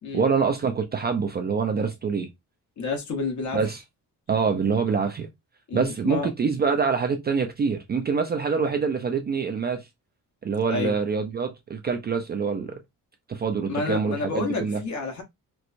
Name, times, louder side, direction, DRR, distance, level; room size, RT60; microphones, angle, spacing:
voice 1, 0.1-2.3 3.5-3.8 4.3-5.3 5.7-9.9 10.4-12.8 13.3-14.8, right 5 dB, 30° right, 0.4 m, -25 dB
voice 2, 2.8-3.6 5.7-6.3 10.7-11.0 13.7-15.2, left 4 dB, 55° left, 1.1 m, -29 dB
4.5 x 2.1 x 2.5 m
wide cardioid pair, 175°, 35 cm